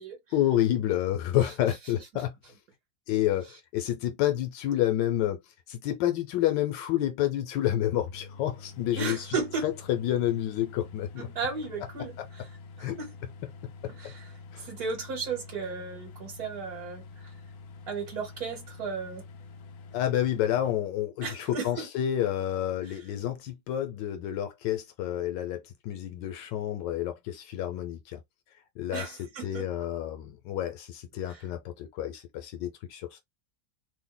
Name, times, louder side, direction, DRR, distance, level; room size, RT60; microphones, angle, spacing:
voice 1, 0.3-2.3 3.1-5.4 5.7-9.3 9.6-11.3 12.2-12.3 12.8-13.0 13.8-14.1 14.5-14.7 19.9-28.2 28.8-29.2 29.4-33.2, left 12 dB, 85° left, 1.3 m, -29 dB
sound 1, 7.9-20.7, left 4 dB, 65° left, 0.8 m, -47 dB
voice 2, 9.0-9.6 11.2-12.5 12.8-13.1 13.9-14.3 14.6-17.3 17.9-19.2 21.2-21.9 22.8-23.1 28.9-29.7 31.3-31.5, right 4 dB, 60° right, 1.5 m, -35 dB
3.0 x 2.1 x 3.7 m
omnidirectional pair, 1.9 m